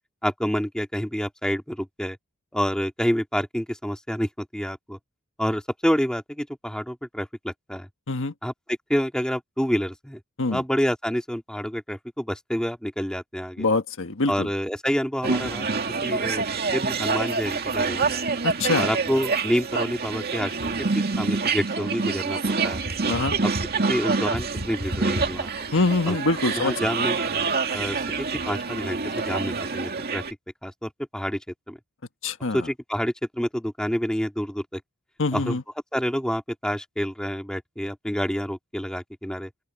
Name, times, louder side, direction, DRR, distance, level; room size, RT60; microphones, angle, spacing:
voice 1, 0.2-2.2 2.5-5.0 5.4-7.9 8.4-10.2 10.5-13.7 14.3-15.6 16.0-16.4 16.7-18.2 18.8-22.8 23.4-23.5 23.9-25.5 26.1-26.2 26.4-27.2 27.7-30.2 30.6-31.4 31.7-31.8 32.5-34.8 35.3-35.6 35.9-39.5, equal, 5° left, 2.8 m, -28 dB
voice 2, 13.6-14.5 18.4-18.9 23.1-23.3 25.7-26.7 32.2-32.7 35.2-35.6, left 3 dB, 60° left, 1.5 m, -24 dB
sound 1, 15.2-30.3, right 4 dB, 45° right, 2.3 m, -26 dB
open air
head